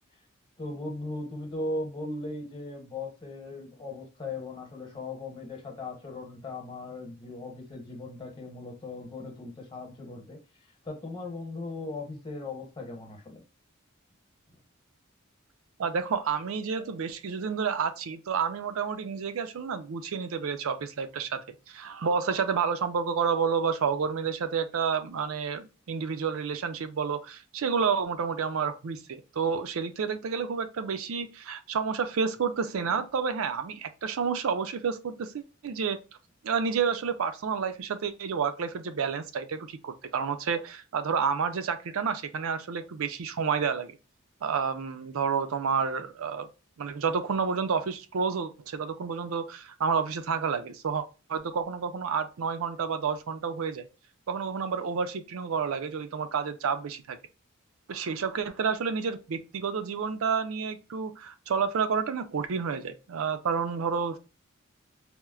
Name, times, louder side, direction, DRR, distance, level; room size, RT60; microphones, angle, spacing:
voice 1, 0.6-10.4 10.8-13.4, left 2 dB, 20° left, 0.9 m, -38 dB
voice 2, 15.8-36.0 36.4-44.0 44.4-46.5 46.8-53.9 54.3-57.2 57.9-64.2, right 6 dB, 80° right, 0.4 m, -30 dB
4.3 x 2.0 x 2.3 m
head